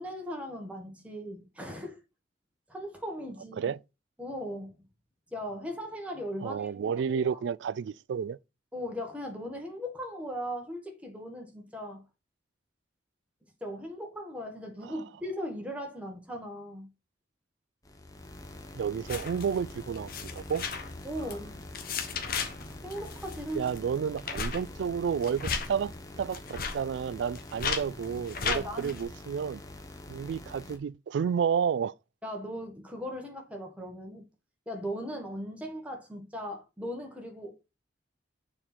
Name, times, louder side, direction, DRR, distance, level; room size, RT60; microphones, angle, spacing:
voice 1, 0.0-2.0 2.7-3.7 4.2-4.8 5.3-7.4 8.7-12.0 13.6-16.9 21.0-21.6 22.8-23.7 28.5-28.9 32.2-34.2 34.6-37.7, equal, 5° right, 1.6 m, -38 dB
voice 2, 6.4-8.4 18.7-20.6 23.5-29.6 30.1-31.9, right 7 dB, 70° right, 0.3 m, -31 dB
sound 1, 17.8-30.8, left 1 dB, 20° left, 1.0 m, -46 dB
sound 2, 19.0-29.0, left 5 dB, 50° left, 1.2 m, -37 dB
6.8 x 4.4 x 4.2 m
head